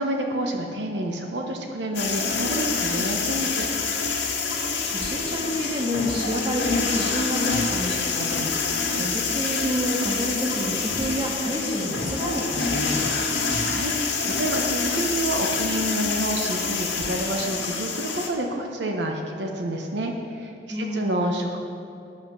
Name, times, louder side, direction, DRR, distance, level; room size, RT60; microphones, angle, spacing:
voice 1, 0.0-3.7 13.6-13.9 14.2-21.6, right 1 dB, 75° right, 2 dB, 0.9 m, -28 dB
sound 1, 1.9-18.3, left 4 dB, 85° left, 1.8 m, -27 dB
voice 2, 4.5-13.2 20.7-21.4, equal, 25° right, -2 dB, 1.6 m, -29 dB
9.9 x 7.4 x 6.0 m, 2.6 s
head